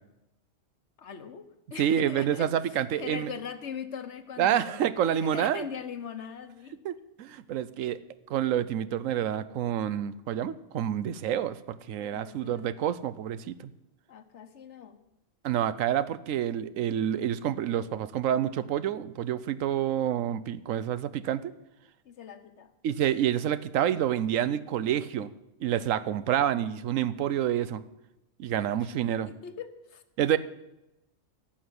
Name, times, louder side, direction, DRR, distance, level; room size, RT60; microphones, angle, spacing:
voice 1, 1.0-1.4 1.7-2.5 2.9-4.9 5.2-6.7 12.1-12.8 14.1-15.0 22.0-22.7 28.8-28.9 29.2-30.0, left 7 dB, 65° left, 10 dB, 1.2 m, -41 dB
voice 2, 1.8-3.3 4.4-5.7 6.8-8.0 8.3-13.7 15.4-21.5 22.8-25.3 25.6-27.8 28.4-29.3 30.2-30.4, right 10 dB, 85° right, 15 dB, 1.1 m, -28 dB
12.0 x 6.6 x 9.4 m, 0.92 s
omnidirectional pair, 1.3 m